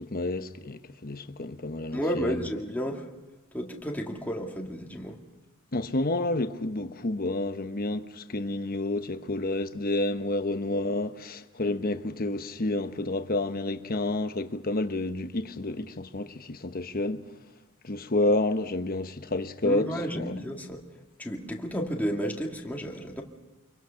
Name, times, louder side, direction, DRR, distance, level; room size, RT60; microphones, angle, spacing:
voice 1, 0.0-2.4 5.7-17.2 17.8-19.9 20.1-20.3, left 2 dB, 45° left, 1.1 m, -29 dB
voice 2, 1.9-3.1 3.5-5.2 19.6-20.8 21.2-23.2, equal, 10° left, 2.2 m, -32 dB
26.5 x 23.5 x 5.9 m
head